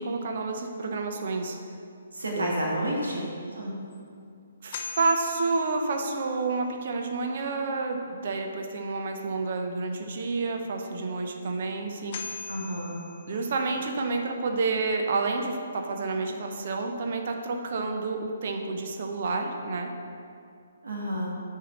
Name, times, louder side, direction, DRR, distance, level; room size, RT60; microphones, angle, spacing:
voice 1, 0.0-1.6 2.4-2.5 4.6-12.4 13.3-19.9, right 3 dB, 50° right, 3 dB, 0.8 m, -29 dB
voice 2, 2.1-3.2 3.6-3.7 12.5-13.0 20.8-21.4, equal, 75° right, -3 dB, 2.1 m, -30 dB
sound 1, 3.9-4.0 4.7-6.3 11.4-11.5 12.1-13.8, left 5 dB, 40° left, 0.9 m, -40 dB
7.0 x 4.7 x 6.2 m, 2.4 s
figure-of-eight pair, 135°, 0 cm